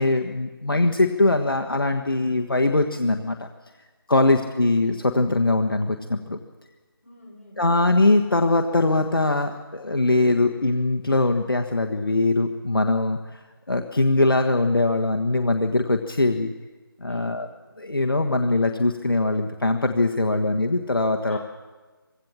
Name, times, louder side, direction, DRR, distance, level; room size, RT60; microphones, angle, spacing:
voice 1, 0.0-3.5 4.1-6.4 7.6-13.4 13.7-16.5 17.0-17.5 17.8-21.4, left 2 dB, 65° left, 4 dB, 1.4 m, -22 dB
voice 2, 7.0-7.6 17.1-17.4 21.3-21.4, left 1 dB, 35° left, -3 dB, 6.5 m, -47 dB
22.5 x 16.5 x 7.3 m, 1.3 s
figure-of-eight pair, 175°, 12 cm